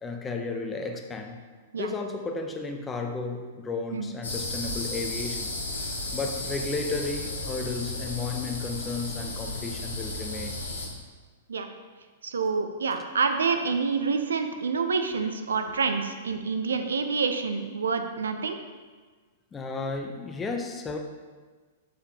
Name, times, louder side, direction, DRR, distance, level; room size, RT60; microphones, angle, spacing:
voice 1, 0.0-1.4 1.7-5.5 6.1-10.6 19.5-21.0, left 3 dB, 15° left, 3 dB, 0.7 m, -33 dB
sound 1, 4.2-10.9, left 2 dB, 80° left, 1.2 m, -34 dB
voice 2, 12.2-18.6, right 5 dB, 80° right, 7 dB, 0.5 m, -27 dB
6.8 x 5.0 x 2.8 m, 1.4 s
hypercardioid pair, 110°, 0 cm